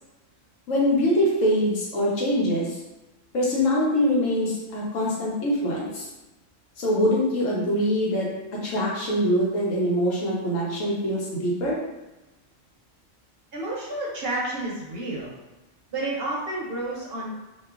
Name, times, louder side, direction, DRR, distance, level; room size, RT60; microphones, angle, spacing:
voice 1, 0.7-2.8 3.3-6.1 6.8-8.3 8.6-11.8, equal, 80° left, -5 dB, 1.1 m, -23 dB
voice 2, 13.5-15.3 15.9-17.3, right 2 dB, 60° right, -4 dB, 0.7 m, -30 dB
2.9 x 2.2 x 2.3 m, 1.0 s
omnidirectional pair, 1.3 m